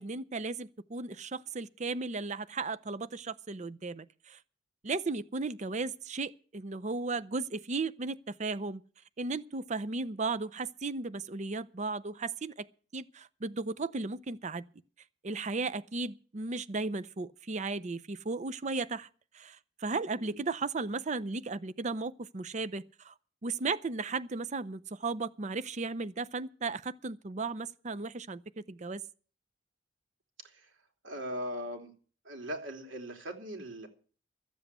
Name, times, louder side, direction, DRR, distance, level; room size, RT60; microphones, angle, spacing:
voice 1, 0.0-4.4 4.8-8.8 9.2-12.7 12.9-14.6 15.2-19.1 19.3-23.1 23.4-28.4 28.7-29.0, right 3 dB, 40° right, 0.6 m, -35 dB
voice 2, 31.0-31.9 32.2-33.9, equal, 80° right, 3.0 m, -40 dB
14.0 x 8.0 x 8.1 m
head